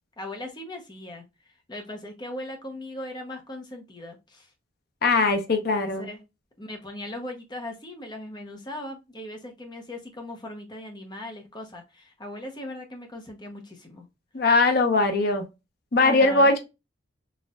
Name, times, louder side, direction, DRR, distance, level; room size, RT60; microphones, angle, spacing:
voice 1, 0.2-1.2 1.7-4.5 5.5-6.2 6.6-14.0 16.0-16.5, left 1 dB, 20° left, 0.8 m, -39 dB
voice 2, 5.0-6.1 14.3-15.4 15.9-16.6, left 3 dB, 55° left, 0.7 m, -20 dB
4.1 x 2.5 x 2.3 m
head